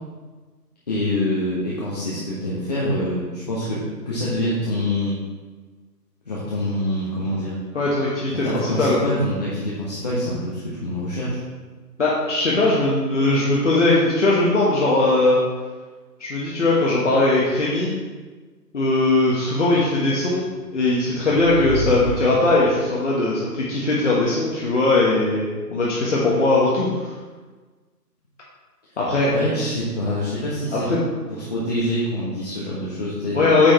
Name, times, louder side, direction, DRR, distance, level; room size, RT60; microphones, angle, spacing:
voice 1, 0.9-5.1 6.2-7.5 8.4-11.4 29.3-30.9 31.3-33.6, left 1 dB, 25° left, -8 dB, 1.2 m, -25 dB
voice 2, 7.7-8.4 8.8-9.0 12.0-15.4 16.2-17.9 18.7-20.5 20.7-26.9 29.0-29.3 30.8-31.0 33.3-33.7, left 2 dB, 45° left, -6 dB, 1.6 m, -19 dB
sound 1, 20.7-23.0, left 1 dB, ahead, 1.5 m, -30 dB
8.7 x 5.5 x 4.2 m, 1.3 s
figure-of-eight pair, 155°, 50 cm